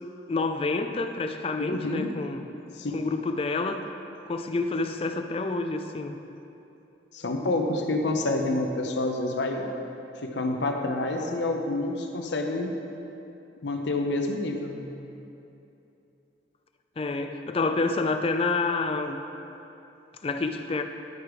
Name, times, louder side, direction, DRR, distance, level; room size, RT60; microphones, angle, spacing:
voice 1, 0.0-2.4 2.9-3.9 4.3-6.1 17.0-19.2 20.2-20.8, left 3 dB, 30° left, 7 dB, 0.4 m, -28 dB
voice 2, 1.6-2.1 2.7-3.1 7.1-9.7 10.2-12.7 13.6-14.9, left 2 dB, 70° left, 3 dB, 0.7 m, -28 dB
11.0 x 4.9 x 4.7 m, 2.9 s
head